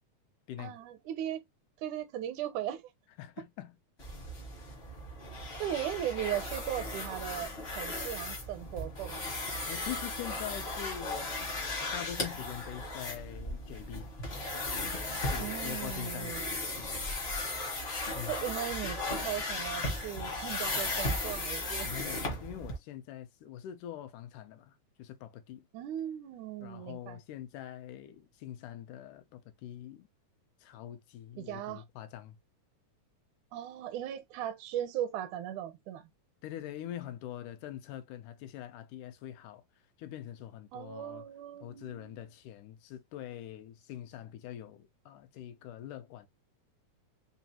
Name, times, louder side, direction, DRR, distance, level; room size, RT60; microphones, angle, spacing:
voice 1, 0.6-1.4 1.8-2.8 5.6-9.2 15.4-16.6 18.2-21.9 25.7-27.2 31.4-31.8 33.5-36.1 40.7-42.3, right 11 dB, 80° right, 2.0 m, -38 dB
voice 2, 3.2-3.8 9.7-11.4 11.7-14.1 15.2-16.3 18.1-18.4 21.8-25.6 26.6-30.1 30.6-32.4 36.4-39.6 40.0-41.2 41.6-46.3, left 11 dB, 80° left, 2.1 m, -44 dB
sound 1, 4.0-22.8, left 2 dB, 45° left, 0.7 m, -36 dB
5.3 x 2.4 x 2.8 m
omnidirectional pair, 3.6 m